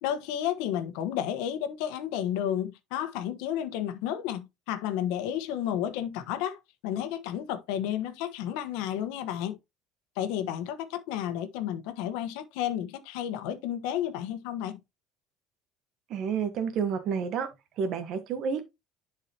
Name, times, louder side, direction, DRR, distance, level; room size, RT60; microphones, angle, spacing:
voice 1, 0.0-9.6 10.2-14.8, left 10 dB, 75° left, 1.2 m, -32 dB
voice 2, 16.1-17.5 17.8-18.6, right 6 dB, 45° right, 1.3 m, -29 dB
10.5 x 4.8 x 2.9 m
cardioid pair, 165°, 0 cm